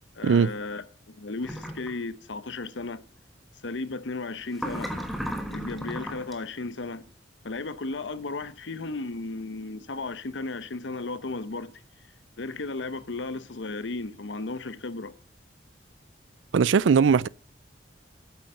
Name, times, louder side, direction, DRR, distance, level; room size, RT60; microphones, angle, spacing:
voice 1, 0.1-3.0 3.6-4.9 5.5-7.0 7.4-11.8 12.4-15.1, left 3 dB, 80° left, 0.8 m, -35 dB
sound 1, 1.4-1.9 4.5-6.3, equal, ahead, 1.2 m, -34 dB
voice 2, 16.5-17.3, right 6 dB, 90° right, 0.4 m, -19 dB
8.5 x 8.1 x 6.6 m
head